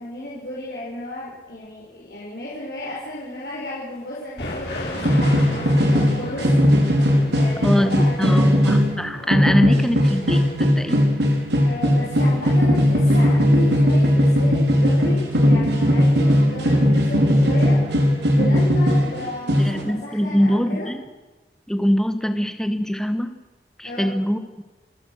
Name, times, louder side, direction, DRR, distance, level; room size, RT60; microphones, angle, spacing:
voice 1, 0.0-6.5 6.8-6.9 7.3-8.4 9.7-10.0 11.6-17.8 18.3-20.9 23.8-24.1, left 1 dB, 60° left, -6 dB, 5.1 m, -33 dB
sound 1, 4.4-9.7, left 1 dB, 75° left, 6.7 m, -35 dB
sound 2, 4.9-19.2 19.5-19.8, equal, 75° right, 4.3 m, -18 dB
voice 2, 7.6-11.0 19.6-21.0 21.7-23.3 23.8-24.6, equal, 5° left, 8 dB, 1.3 m, -23 dB
30.0 x 16.0 x 6.4 m, 1.2 s
head